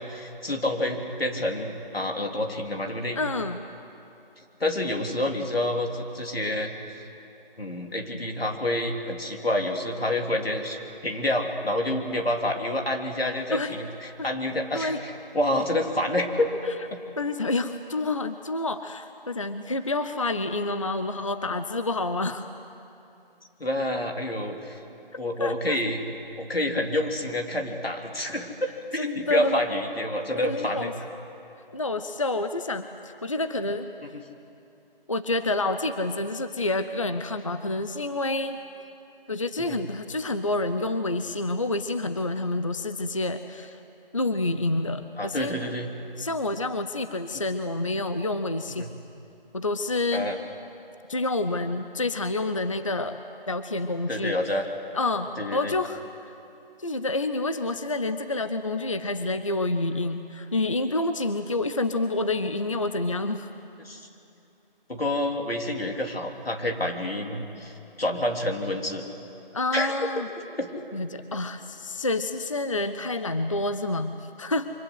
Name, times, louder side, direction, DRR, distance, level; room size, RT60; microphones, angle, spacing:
voice 1, 0.0-3.2 4.6-6.7 7.6-16.5 16.9-17.0 23.6-24.8 25.2-26.0 26.4-28.5 28.9-30.9 34.1-34.2 39.6-39.8 45.2-45.9 48.8-48.9 50.1-50.4 54.1-54.6 55.4-55.7 63.8-64.1 64.9-69.0 69.7-69.9 70.6-70.7, left 1 dB, 85° left, 2 dB, 3.7 m, -28 dB
voice 2, 3.2-3.6 13.5-13.8 14.2-14.3 14.7-15.0 16.7-16.8 17.2-22.5 25.4-25.8 29.0-29.6 30.3-30.9 31.7-33.9 35.1-38.6 39.3-43.8 44.1-45.6 46.2-48.9 49.5-50.3 51.1-53.2 53.5-54.4 54.9-56.0 56.8-63.5 69.5-70.3 70.9-74.7, left 2 dB, 35° left, 9 dB, 0.6 m, -28 dB
27.0 x 25.0 x 8.0 m, 2.8 s
figure-of-eight pair, 170°, 29 cm